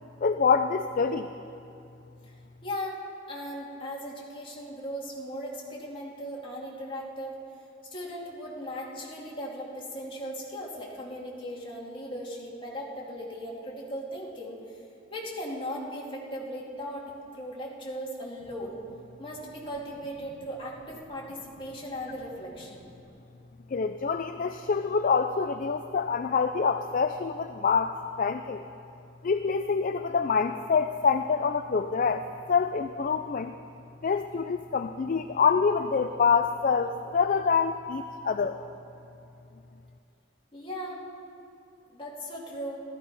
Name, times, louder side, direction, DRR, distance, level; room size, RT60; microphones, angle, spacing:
voice 1, 0.2-1.3 23.7-28.6 29.2-33.5 34.0-38.6, left 5 dB, 45° left, 8 dB, 0.4 m, -26 dB
voice 2, 2.6-3.0 3.3-7.3 7.9-14.6 15.1-17.1 17.3-18.8 19.2-22.9 40.5-41.0 41.9-42.8, equal, 30° left, -4 dB, 2.7 m, -38 dB
15.5 x 14.0 x 5.3 m, 2.6 s
head